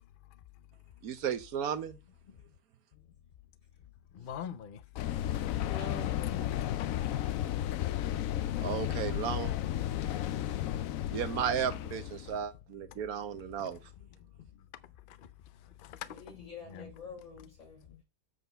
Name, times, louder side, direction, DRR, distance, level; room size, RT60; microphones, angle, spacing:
voice 1, 1.0-2.0 8.6-9.5 11.1-13.8, right 8 dB, 65° right, 1.3 m, -34 dB
voice 2, 4.1-5.6 6.0-6.5 7.4-7.6 8.0-8.2 12.2-12.4 12.9-13.0 13.5-13.8 14.4-14.5 15.1-15.3 15.6-16.9 17.9-18.0, left 9 dB, 85° left, 0.4 m, -46 dB
sound 1, 5.0-12.4, left 12 dB, 70° left, 0.8 m, -33 dB
voice 3, 5.2-6.7 16.0-18.0, left 4 dB, 50° left, 5.0 m, -47 dB
7.9 x 3.9 x 6.8 m
omnidirectional pair, 1.8 m